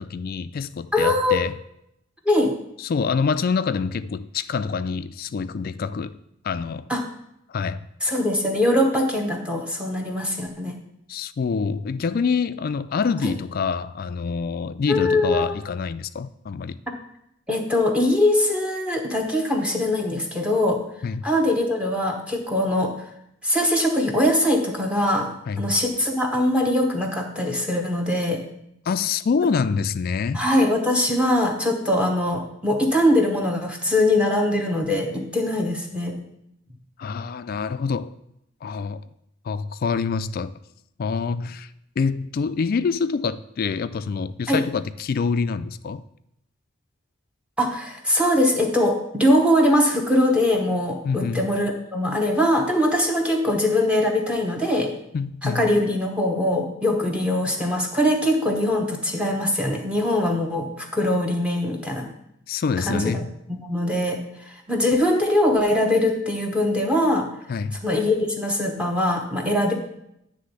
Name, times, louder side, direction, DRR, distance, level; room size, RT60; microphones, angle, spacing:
voice 1, 0.0-1.6 2.8-6.2 6.4-6.9 7.5-7.9 11.1-16.8 21.0-21.2 25.5-25.7 28.9-30.5 37.0-38.2 38.6-39.0 39.4-40.6 41.0-41.7 42.0-46.0 51.0-51.5 55.1-55.7 62.5-63.3 67.5-67.8, left 5 dB, 45° left, 0.3 m, -26 dB
voice 2, 0.9-1.4 2.3-2.5 6.9-7.0 8.0-10.7 13.2-13.3 14.9-15.5 17.5-20.8 21.2-23.0 23.4-28.4 30.3-36.2 44.5-44.6 47.6-54.9 55.4-62.1 62.9-63.2 63.5-64.2 64.5-67.3 67.8-69.7, left 1 dB, 5° right, 0.8 m, -22 dB
9.5 x 3.5 x 6.6 m
head